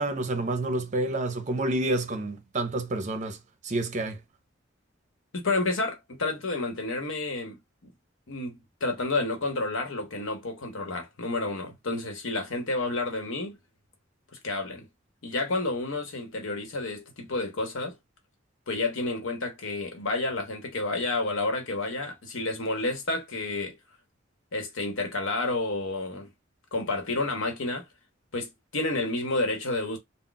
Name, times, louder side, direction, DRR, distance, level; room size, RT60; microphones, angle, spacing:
voice 1, 0.0-3.4 3.6-4.2, right 2 dB, 40° right, 0.7 m, -28 dB
voice 2, 5.3-7.9 8.3-13.6 14.4-14.9 15.2-18.0 18.7-23.8 24.5-26.3 26.7-27.8 28.3-30.0, left 2 dB, 75° left, 1.0 m, -30 dB
2.4 x 2.1 x 3.8 m
head